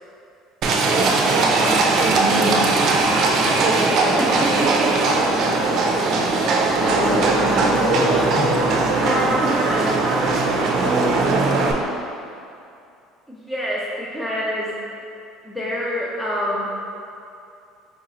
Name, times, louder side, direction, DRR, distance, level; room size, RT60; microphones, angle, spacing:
Livestock farm animals working animals, 0.6-11.7, right 3 dB, 50° right, 0.4 m, -19 dB
voice 1, 2.1-2.6 6.7-8.5, equal, 50° left, -6 dB, 1.0 m, -25 dB
voice 2, 3.9-5.3 5.6-5.7 9.0-9.9 13.3-14.8 15.4-16.7, equal, 5° left, -6 dB, 0.4 m, -27 dB
4.5 x 3.0 x 2.6 m, 2.6 s
cardioid pair, 125°, 0 cm